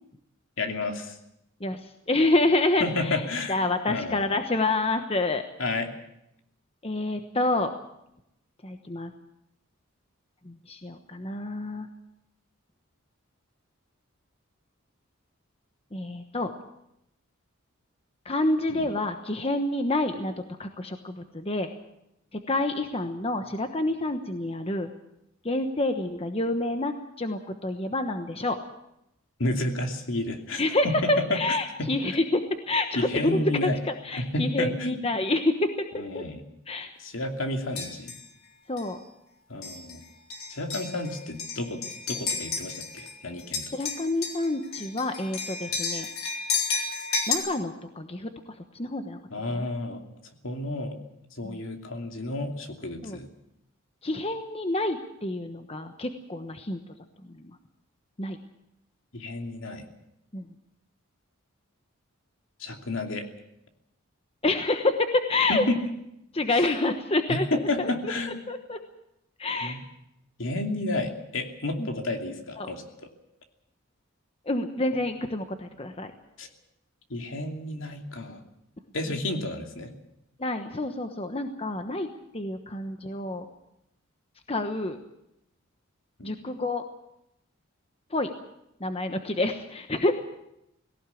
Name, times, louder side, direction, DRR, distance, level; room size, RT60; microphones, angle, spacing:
voice 1, 0.6-1.1 2.8-3.5 3.9-4.2 5.6-5.9 18.7-18.9 29.4-31.4 31.8-31.9 32.9-33.8 34.2-35.0 35.9-36.4 37.0-38.1 39.5-40.0 40.5-41.8 42.1-43.6 49.3-50.0 50.4-51.0 51.4-53.3 59.1-59.9 62.6-63.3 65.5-65.8 66.5-66.7 67.3-68.4 69.6-69.8 70.4-73.1 76.4-76.5 77.1-78.4 78.9-79.9 86.2-86.3, left 2 dB, 70° left, 4 dB, 2.8 m, -31 dB
voice 2, 2.1-3.2 3.5-5.4 6.8-7.7 8.6-9.1 10.4-11.9 15.9-16.5 18.2-20.3 20.6-21.7 22.5-24.9 25.4-28.6 30.6-32.4 32.7-36.2 36.7-36.9 38.7-39.0 43.7-46.1 47.3-48.3 48.7-49.2 49.5-49.6 51.4-51.6 53.0-53.2 54.0-56.8 57.3-57.4 58.2-58.4 60.3-60.5 64.4-64.9 65.3-65.6 66.3-67.5 67.8-67.9 68.5-68.8 69.4-69.8 71.8-71.9 72.6-72.7 74.5-76.1 80.4-82.1 82.3-83.4 84.5-85.0 86.2-86.8 88.1-88.3 88.8-90.1, left 2 dB, 30° left, 7 dB, 1.1 m, -28 dB
sound 1, 37.7-38.3 38.8-38.9 39.6-40.0 40.3-43.1 43.4-47.3, left 5 dB, 85° left, 3.7 m, -32 dB
18.5 x 17.5 x 8.5 m, 0.82 s
head